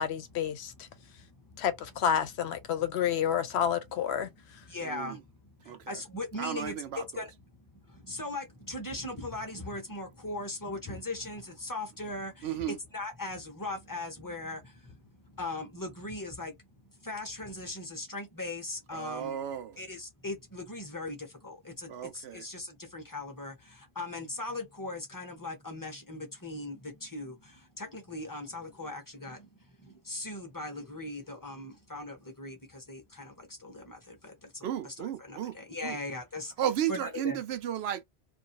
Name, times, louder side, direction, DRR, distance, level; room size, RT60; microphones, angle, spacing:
voice 1, 0.0-0.9 1.6-4.3, left 9 dB, 80° left, 0.8 m, -29 dB
voice 2, 1.0-1.6 4.3-4.4 4.7-7.3 7.7-16.7 17.0-19.4 19.8-36.5 36.9-37.4, left 2 dB, 20° left, 0.8 m, -39 dB
voice 3, 4.8-5.2 5.7-6.0 6.4-7.2 12.4-12.8 18.9-19.8 21.9-22.5 34.6-35.6 35.8-36.0 36.6-38.0, right 10 dB, 75° right, 0.8 m, -34 dB
2.6 x 2.6 x 2.8 m
omnidirectional pair, 1.1 m